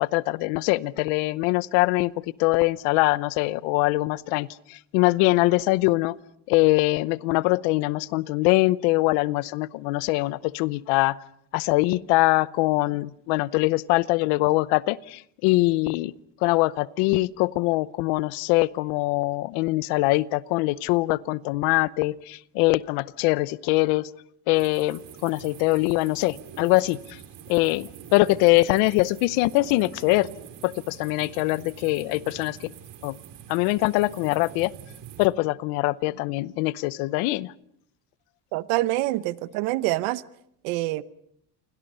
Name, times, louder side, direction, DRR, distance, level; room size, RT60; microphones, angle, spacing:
voice 1, 0.0-2.1 2.4-6.2 6.5-11.2 11.5-16.1 16.4-24.1 24.5-27.0 27.5-30.3 30.6-32.7 33.0-33.2 33.5-34.7 35.2-37.5, left 21 dB, 85° left, 19 dB, 0.9 m, -23 dB
sound 1, 24.5-35.3, right 9 dB, 65° right, 3.1 m, -45 dB
voice 2, 38.5-40.2 40.6-41.0, right 17 dB, 85° right, 16 dB, 0.9 m, -26 dB
29.0 x 24.5 x 5.5 m, 0.72 s
supercardioid pair, 100°, 45 cm